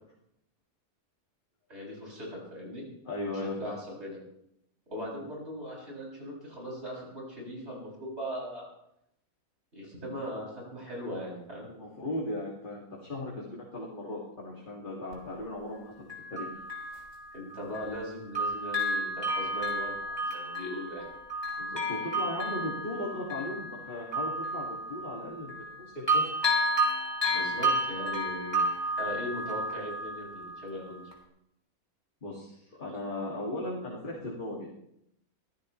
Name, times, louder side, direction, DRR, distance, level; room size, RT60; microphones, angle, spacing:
voice 1, 1.7-2.8 3.3-4.2 4.9-8.6 9.7-11.7 17.3-21.0 27.3-28.6 29.0-31.0, equal, 45° right, -4 dB, 8.0 m, -39 dB
voice 2, 3.0-3.7 4.9-5.1 11.7-16.6 21.6-26.2 32.2-34.7, left 1 dB, 35° left, -5 dB, 2.9 m, -37 dB
Bell, 15.1-15.2 16.1-18.1 18.3-25.8 26.1-30.7 31.1-31.2, right 1 dB, 15° left, 3.0 m, -31 dB
24.0 x 16.0 x 3.4 m, 0.77 s
omnidirectional pair, 1.5 m